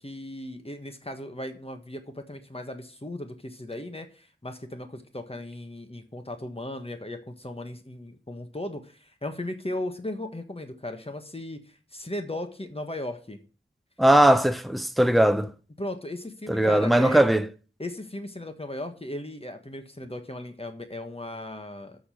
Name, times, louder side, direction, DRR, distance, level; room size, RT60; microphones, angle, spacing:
voice 1, 0.0-13.4 15.8-17.2 17.8-22.0, left 1 dB, 30° left, 1.4 m, -37 dB
voice 2, 14.0-15.5 16.5-17.5, right 1 dB, ahead, 0.7 m, -19 dB
6.7 x 6.4 x 7.5 m
wide cardioid pair, 55°, 21 cm